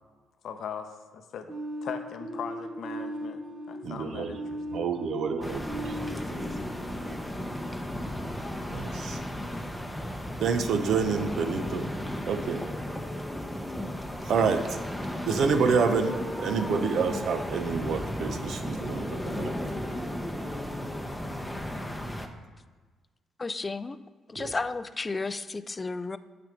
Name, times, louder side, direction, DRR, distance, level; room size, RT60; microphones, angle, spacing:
voice 1, 0.4-4.8, left 7 dB, 70° left, 7 dB, 0.6 m, -40 dB
sound 1, 1.5-8.2, right 1 dB, 35° right, 0.9 m, -38 dB
voice 2, 3.8-4.3 4.7-6.0 8.7-9.2 10.4-11.9 12.3-12.7 14.2-14.8 15.3-19.5 24.4-24.5, right 5 dB, 70° right, 7 dB, 0.7 m, -28 dB
sound 2, 5.4-22.3, left 1 dB, 5° left, 0.7 m, -34 dB
voice 3, 23.4-24.0 24.3-26.2, left 3 dB, 25° left, 14 dB, 0.3 m, -33 dB
9.2 x 3.4 x 5.1 m, 1.4 s
cardioid pair, 90°, 0 cm